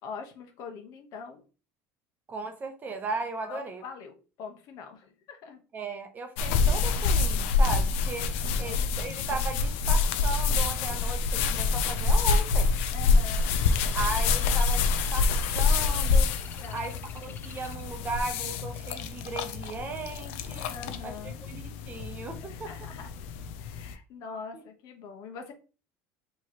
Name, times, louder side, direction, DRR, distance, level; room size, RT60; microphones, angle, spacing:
voice 1, 0.0-1.4 3.4-5.6 8.4-8.8 12.9-13.6 16.6-16.8 20.7-21.4 22.4-23.1 23.6-25.5, left 5 dB, 55° left, 1.0 m, -43 dB
voice 2, 2.3-3.8 5.7-12.7 13.9-20.7 21.0-22.7 24.5-24.6, right 3 dB, 25° right, 0.7 m, -37 dB
sound 1, 6.4-23.9, left 4 dB, 90° left, 0.5 m, -27 dB
Bird, 12.7-18.8 19.3-19.7, left 6 dB, 30° left, 0.5 m, -47 dB
4.7 x 3.0 x 2.9 m
cardioid pair, 145°, 7 cm